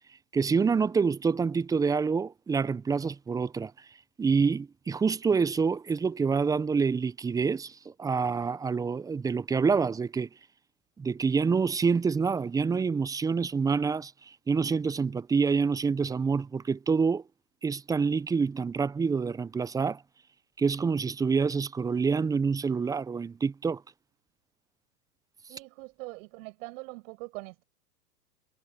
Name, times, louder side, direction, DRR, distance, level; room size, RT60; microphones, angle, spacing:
voice 1, 0.3-3.7 4.2-10.3 11.0-14.1 14.5-17.2 17.6-20.0 20.6-23.8, right 5 dB, 10° right, 0.5 m, -27 dB
voice 2, 25.5-27.6, right 25 dB, 55° right, 5.8 m, -42 dB
hypercardioid pair, 105°, 48 cm